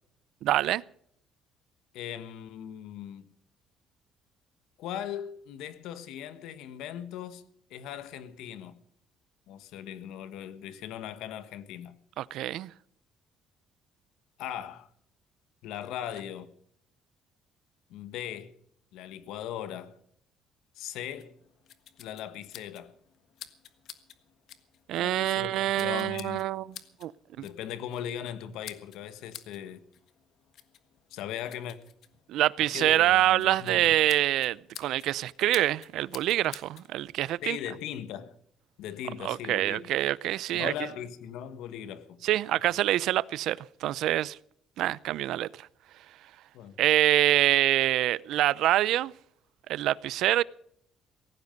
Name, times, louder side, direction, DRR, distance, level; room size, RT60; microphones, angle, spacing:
voice 1, 0.4-0.8 12.2-12.7 24.9-26.7 27.0-27.1 27.4-27.5 32.3-37.6 39.2-40.7 42.2-44.4 44.8-45.7 46.8-49.1 49.7-50.4, right 14 dB, 65° right, 0.5 m, -25 dB
voice 2, 1.9-3.3 4.8-7.4 7.7-8.7 9.5-11.9 14.4-14.9 15.6-16.5 17.9-18.5 18.9-19.9 20.7-21.4 22.0-22.9 25.0-26.4 27.4-29.8 31.1-31.8 32.6-34.0 37.4-38.3 38.8-39.9 40.5-42.2 46.5-46.8, left 10 dB, 80° left, 1.5 m, -39 dB
sound 1, 21.2-36.9, left 10 dB, 55° left, 1.5 m, -51 dB
17.5 x 15.0 x 5.3 m
cardioid pair, 165°, 0 cm